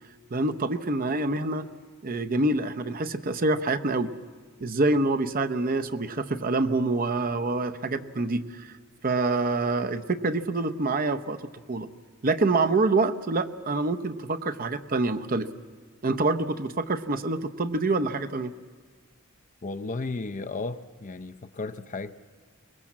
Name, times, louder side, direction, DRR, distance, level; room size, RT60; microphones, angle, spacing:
voice 1, 0.3-1.6 2.0-4.1 4.6-8.7 9.0-11.4 11.7-11.9 12.2-15.5 16.0-18.5, right 2 dB, 45° right, 10 dB, 0.8 m, -26 dB
voice 2, 19.6-22.3, left 3 dB, 40° left, 11 dB, 0.6 m, -34 dB
24.0 x 21.0 x 7.4 m, 1.5 s
head